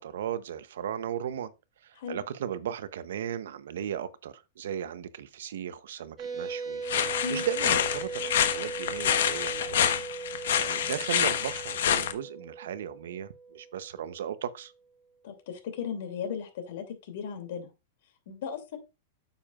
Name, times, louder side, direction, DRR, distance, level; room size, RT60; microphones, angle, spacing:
voice 1, 0.0-1.5 1.8-10.1 10.3-14.7, right 9 dB, 80° right, 0.8 m, -36 dB
sound 1, 6.2-14.2, right 4 dB, 20° right, 1.4 m, -39 dB
sound 2, 6.9-12.1, left 9 dB, 80° left, 1.1 m, -27 dB
voice 2, 15.2-17.7 18.3-18.8, left 6 dB, 65° left, 2.7 m, -36 dB
9.0 x 7.0 x 2.4 m
supercardioid pair, 145°, 0 cm